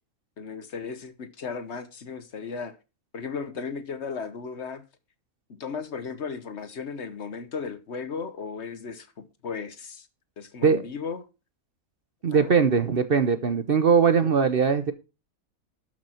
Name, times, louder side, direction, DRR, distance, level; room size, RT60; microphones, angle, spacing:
voice 1, 0.4-2.8 3.1-4.8 5.5-10.1 10.4-11.2 12.3-12.5, left 5 dB, 55° left, 1.2 m, -35 dB
voice 2, 12.2-14.9, right 6 dB, 45° right, 0.9 m, -21 dB
12.5 x 6.3 x 4.4 m
omnidirectional pair, 1.5 m